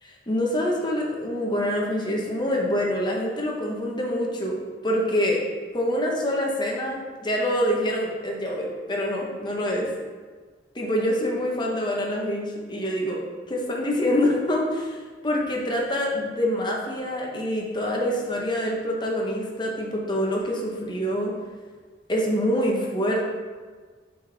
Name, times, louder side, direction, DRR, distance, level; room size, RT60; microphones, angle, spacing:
voice 1, 0.0-4.6 4.8-5.4 5.7-9.9 10.7-13.2 13.5-15.0 15.2-21.3 22.1-23.3, equal, 25° left, -1 dB, 0.9 m, -26 dB
7.2 x 4.1 x 3.4 m, 1.4 s
head